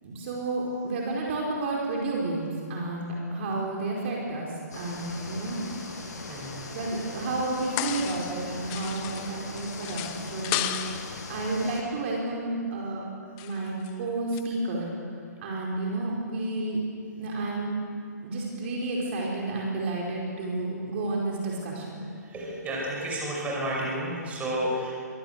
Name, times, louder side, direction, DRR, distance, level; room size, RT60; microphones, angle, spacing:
voice 1, 0.0-4.5 4.7-5.6 6.7-10.1 10.3-10.7 11.3-13.0 13.4-15.0 15.4-16.8 17.2-17.7 18.2-21.9, right 2 dB, 40° right, -2 dB, 4.9 m, -31 dB
sound 1, 4.7-11.8, left 3 dB, 70° left, 6.9 m, -40 dB
voice 2, 6.3-6.6 22.0-24.9, right 1 dB, 15° right, -3 dB, 5.9 m, -31 dB
sound 2, 7.6-8.4 8.7-11.2 13.4-13.9 14.3-14.4, left 13 dB, 25° left, 1.1 m, -34 dB
23.5 x 18.0 x 8.3 m, 2.3 s
hypercardioid pair, 140°, 9 cm